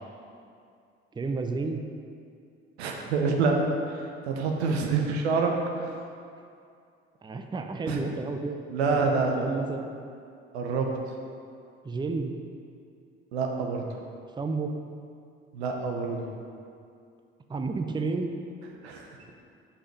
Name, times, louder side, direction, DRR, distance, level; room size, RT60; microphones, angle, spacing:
voice 1, 1.1-1.8 4.7-4.8 7.2-8.6 9.4-9.9 11.8-12.3 14.3-14.7 17.5-18.3, right 3 dB, 15° right, 5 dB, 0.5 m, -31 dB
voice 2, 2.8-3.6 3.9-5.9 7.9-8.0 8.7-9.5 10.5-10.9 13.3-13.8 15.5-16.2 18.8-19.3, right 4 dB, 80° right, 1 dB, 0.7 m, -27 dB
5.4 x 5.0 x 5.1 m, 2.4 s
hypercardioid pair, 50°, 32 cm